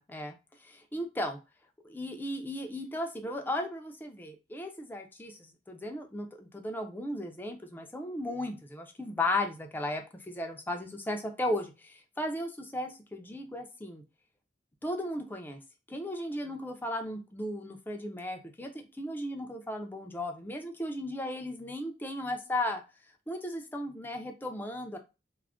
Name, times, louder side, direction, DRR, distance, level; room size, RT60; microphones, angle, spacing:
voice 1, 0.0-1.4 1.8-14.0 14.8-15.6 15.9-22.8 23.3-25.0, left 1 dB, 10° left, 4 dB, 0.4 m, -36 dB
2.4 x 2.1 x 3.4 m, 0.28 s
head